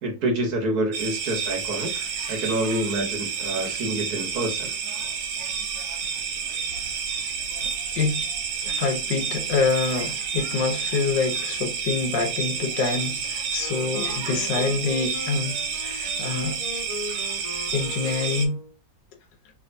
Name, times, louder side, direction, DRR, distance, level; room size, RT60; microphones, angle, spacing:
voice 1, 0.0-4.7, right 1 dB, 60° right, 1.4 m, -27 dB
sound 1, 0.9-18.5, right 6 dB, 75° right, 1.3 m, -30 dB
voice 2, 8.6-16.6 17.7-18.5, left 4 dB, 70° left, 1.4 m, -26 dB
Wind instrument woodwind instrument, 13.6-18.7, left 2 dB, 20° left, 1.5 m, -38 dB
3.4 x 3.3 x 2.5 m
omnidirectional pair, 2.0 m